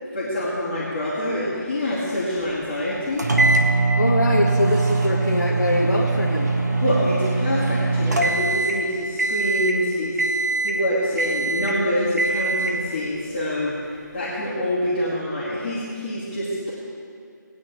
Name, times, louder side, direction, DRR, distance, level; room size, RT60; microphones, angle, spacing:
voice 1, 0.1-3.3 6.8-16.7, left 1 dB, 25° left, -12 dB, 2.4 m, -26 dB
sound 1, 3.2-8.8 9.2-9.8 10.2-10.8 11.2-11.8 12.2-12.8, right 3 dB, 55° right, 1.4 m, -22 dB
voice 2, 4.0-6.5, left 1 dB, 65° left, -4 dB, 1.4 m, -23 dB
19.0 x 9.5 x 3.6 m, 2.3 s
figure-of-eight pair, 155°, 11 cm